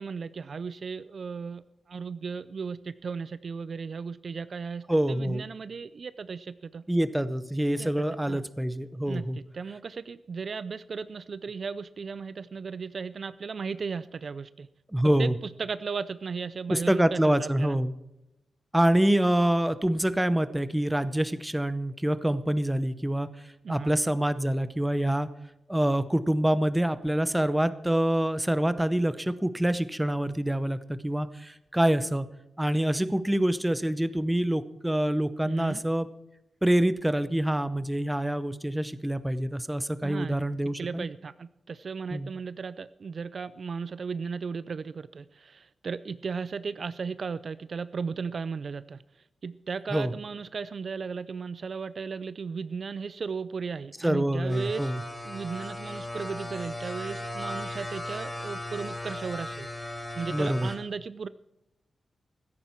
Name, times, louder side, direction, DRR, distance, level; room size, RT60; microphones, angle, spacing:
voice 1, 0.0-6.8 7.8-7.9 8.3-8.4 9.0-14.7 15.2-17.8 23.6-24.0 35.4-35.8 40.0-40.4 40.8-54.9 55.2-61.3, right 5 dB, 45° right, 15 dB, 0.4 m, -36 dB
voice 2, 4.9-5.5 6.9-9.4 14.9-15.4 16.7-17.9 18.7-23.3 23.7-25.3 25.7-32.3 32.6-36.1 36.6-41.1 42.1-42.3 49.9-50.1 54.0-55.0 60.3-60.7, right 1 dB, 5° right, 14 dB, 0.7 m, -26 dB
sound 1, 54.5-60.8, left 1 dB, 10° left, 2.6 m, -37 dB
16.0 x 13.5 x 4.5 m, 0.90 s
wide cardioid pair, 175°, 0 cm